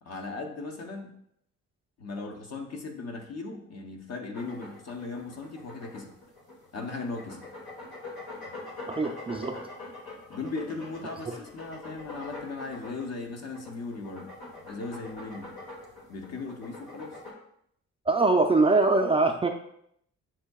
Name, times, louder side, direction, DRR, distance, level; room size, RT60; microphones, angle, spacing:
voice 1, 0.0-1.1 2.0-6.1 6.7-7.4 10.3-14.3 14.6-15.5 16.1-17.2, left 3 dB, 60° left, 3 dB, 0.9 m, -37 dB
sound 1, 4.3-17.3, left 2 dB, 85° left, 1.3 m, -44 dB
voice 2, 8.9-9.6 18.1-19.5, right 3 dB, 20° right, 3 dB, 0.4 m, -23 dB
7.3 x 2.7 x 2.3 m, 0.71 s
cardioid pair, 90°, 30 cm